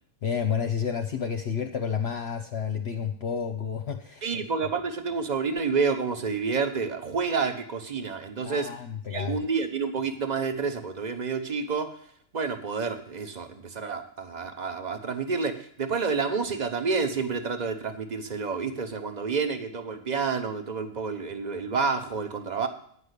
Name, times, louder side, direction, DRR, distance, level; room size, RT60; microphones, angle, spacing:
voice 1, 0.2-4.2 8.4-9.4, left 7 dB, 55° left, 5 dB, 0.9 m, -30 dB
voice 2, 4.2-8.7 9.1-12.0 12.3-22.7, right 5 dB, 35° right, 7 dB, 0.9 m, -29 dB
9.6 x 5.2 x 8.1 m, 0.63 s
omnidirectional pair, 1.4 m